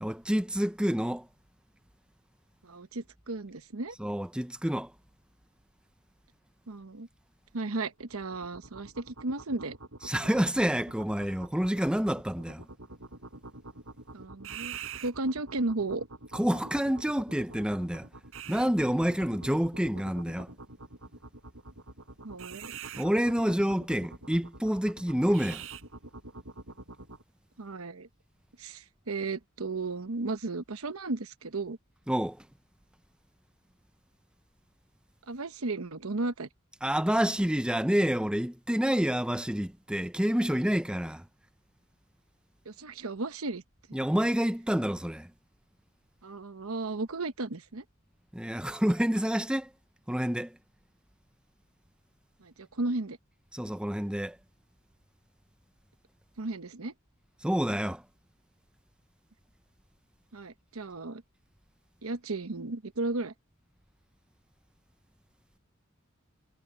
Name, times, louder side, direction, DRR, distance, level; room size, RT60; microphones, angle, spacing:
voice 1, 0.0-1.2 4.0-4.9 10.1-12.6 16.3-18.1 18.5-20.5 23.0-25.6 32.1-32.4 36.8-41.2 43.9-45.3 48.3-49.7 50.1-50.5 53.5-54.3 57.4-58.0, equal, 5° right, 0.7 m, -28 dB
voice 2, 2.6-3.9 6.7-7.1 7.5-9.8 14.1-14.7 15.0-16.0 22.2-22.7 27.6-28.1 28.6-31.8 35.3-36.5 42.6-43.6 43.9-44.0 46.2-47.8 52.4-53.2 56.4-56.9 60.3-61.2 62.0-63.3, right 3 dB, 90° right, 1.1 m, -34 dB
sound 1, 8.0-27.2, right 4 dB, 70° right, 5.8 m, -46 dB
head